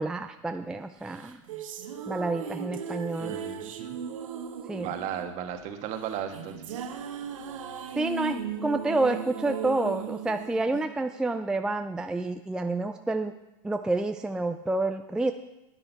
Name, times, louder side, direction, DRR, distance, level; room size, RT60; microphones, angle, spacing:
voice 1, 0.0-1.4 2.1-3.4 4.7-4.9 8.0-13.3 13.6-15.3, right 2 dB, 5° right, 7 dB, 0.4 m, -29 dB
sound 1, 1.1-11.5, right 7 dB, 85° right, 1.1 m, -37 dB
voice 2, 3.2-4.0 4.7-6.9, right 9 dB, 45° right, 6 dB, 1.4 m, -36 dB
10.0 x 9.8 x 4.5 m, 0.94 s
supercardioid pair, 130°, 16 cm